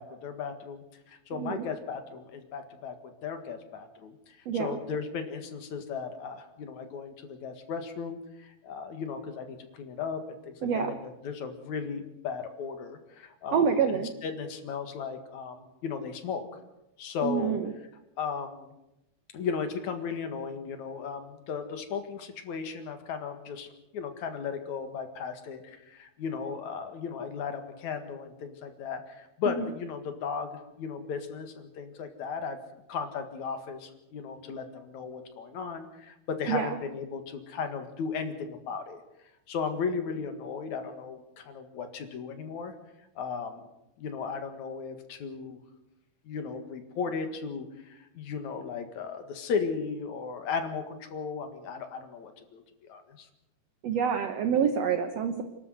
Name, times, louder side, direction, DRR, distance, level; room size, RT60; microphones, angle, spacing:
voice 1, 0.0-16.5 17.0-17.6 18.2-18.7 19.3-23.7 23.9-32.6 32.9-39.0 39.5-42.7 43.2-43.7 44.0-45.6 46.2-53.3, left 6 dB, 55° left, 7 dB, 2.8 m, -36 dB
voice 2, 1.3-1.7 4.4-4.8 10.6-11.0 13.5-14.1 17.2-17.7 29.5-29.6 36.5-36.7 53.8-55.4, right 7 dB, 65° right, 8 dB, 1.6 m, -27 dB
28.0 x 12.5 x 8.0 m, 0.92 s
omnidirectional pair, 4.4 m